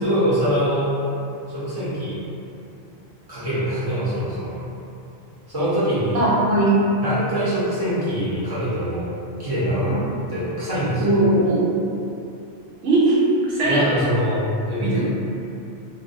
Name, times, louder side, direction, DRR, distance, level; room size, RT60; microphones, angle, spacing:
voice 1, 0.0-0.9 1.5-2.2 3.3-4.5 5.5-6.2 7.0-10.0 10.3-11.1 13.6-15.0, equal, 25° right, -11 dB, 0.6 m, -24 dB
voice 2, 6.1-6.8 9.9-10.0 11.0-11.7 12.8-13.2 13.5-13.9 14.8-15.0, right 2 dB, 90° right, -8 dB, 1.0 m, -19 dB
2.4 x 2.0 x 2.5 m, 2.6 s
omnidirectional pair, 1.2 m